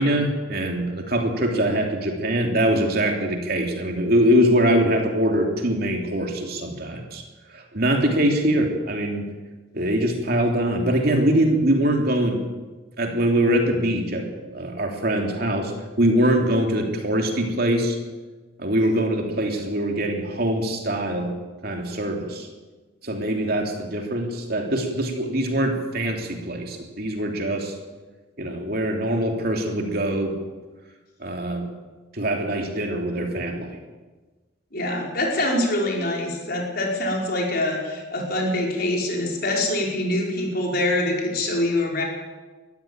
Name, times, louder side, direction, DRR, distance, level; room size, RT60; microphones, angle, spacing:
voice 1, 0.0-7.2 7.5-9.3 9.7-12.4 13.0-15.7 16.0-18.0 18.6-21.3 21.6-22.5 23.0-27.7 28.4-30.4 31.2-31.7 32.1-33.8, right 1 dB, 50° right, 2 dB, 3.0 m, -23 dB
voice 2, 34.7-42.0, left 1 dB, 50° left, -1 dB, 5.2 m, -24 dB
21.5 x 14.0 x 8.9 m, 1.3 s
head